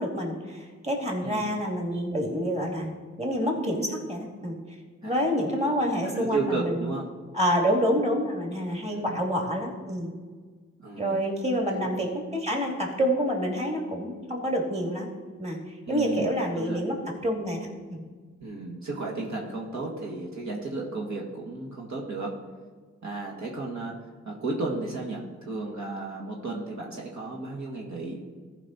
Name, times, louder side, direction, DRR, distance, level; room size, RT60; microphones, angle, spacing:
voice 1, 0.0-2.9 3.2-4.6 5.0-6.9 7.3-10.1 11.0-15.1 15.4-17.0 17.2-18.0, equal, 20° right, 0 dB, 2.7 m, -28 dB
voice 2, 1.2-1.5 5.0-5.3 6.0-7.0 8.9-9.2 10.8-11.2 11.7-11.9 15.9-16.8 18.4-22.3 23.0-28.2, right 3 dB, 60° right, -2 dB, 1.8 m, -33 dB
14.0 x 5.3 x 4.2 m, 1.5 s
supercardioid pair, 50°, 31 cm